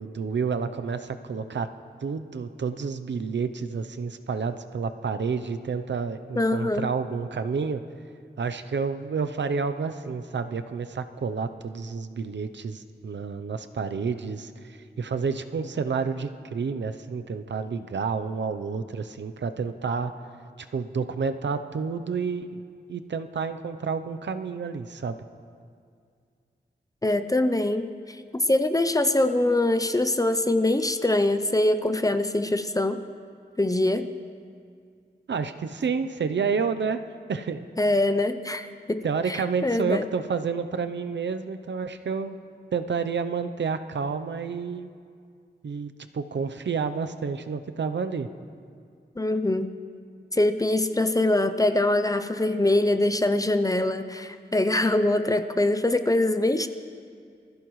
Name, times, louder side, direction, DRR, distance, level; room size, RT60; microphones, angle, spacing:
voice 1, 0.0-1.7 2.0-7.8 8.4-20.1 20.6-22.6 22.9-25.2 35.3-37.0 37.3-37.7 39.0-42.4 42.7-44.9 45.6-48.3, right 5 dB, 75° right, 9 dB, 0.7 m, -29 dB
voice 2, 6.4-6.9 27.0-33.0 33.6-34.1 37.8-40.1 49.2-49.7 50.3-56.7, left 1 dB, 20° left, 9 dB, 0.6 m, -23 dB
24.5 x 15.0 x 3.2 m, 2.2 s
wide cardioid pair, 95°, 18 cm